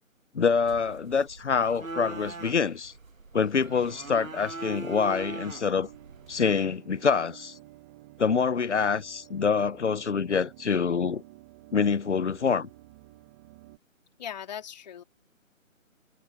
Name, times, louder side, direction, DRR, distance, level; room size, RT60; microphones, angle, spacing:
voice 1, 0.3-2.9 3.3-5.9 6.3-7.5 8.2-11.2 11.7-12.7, left 5 dB, 60° left, 1.1 m, -26 dB
sound 1, 0.6-6.6, right 3 dB, 80° right, 1.8 m, -41 dB
sound 2, 3.6-13.8, right 18 dB, 10° right, 1.4 m, -52 dB
voice 2, 14.2-15.0, left 9 dB, 30° left, 3.2 m, -38 dB
figure-of-eight pair, 155°, 40 cm